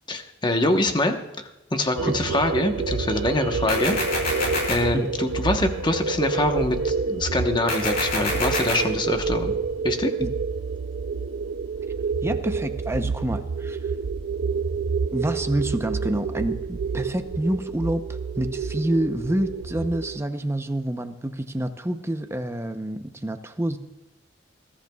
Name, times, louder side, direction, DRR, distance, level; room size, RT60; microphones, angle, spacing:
voice 1, 0.1-3.9 4.7-9.6 9.8-10.1, left 1 dB, 25° left, 5 dB, 1.0 m, -24 dB
sound 1, 2.0-20.2, right 4 dB, 80° right, 0.5 m, -28 dB
sound 2, 3.7-4.7 7.7-8.7, left 2 dB, 55° left, 4.2 m, -26 dB
voice 2, 12.2-13.8 15.1-23.8, right 1 dB, 15° right, 8 dB, 0.7 m, -27 dB
21.0 x 13.5 x 2.3 m, 1.0 s
head